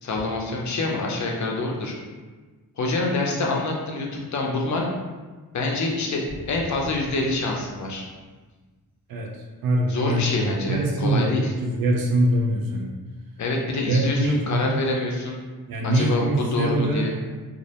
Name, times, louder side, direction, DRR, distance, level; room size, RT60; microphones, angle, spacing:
voice 1, 0.0-1.9 2.8-4.9 5.5-8.0 9.9-11.5 13.4-15.4 15.8-17.2, left 2 dB, 55° left, -1 dB, 0.5 m, -26 dB
sound 1, 6.3-9.0, equal, 5° right, 0.6 m, -43 dB
voice 2, 9.6-10.2 10.7-12.9 13.9-14.8 15.7-17.1, right 1 dB, 80° right, 0 dB, 0.5 m, -23 dB
2.4 x 2.0 x 2.8 m, 1.3 s
wide cardioid pair, 140°, 35 cm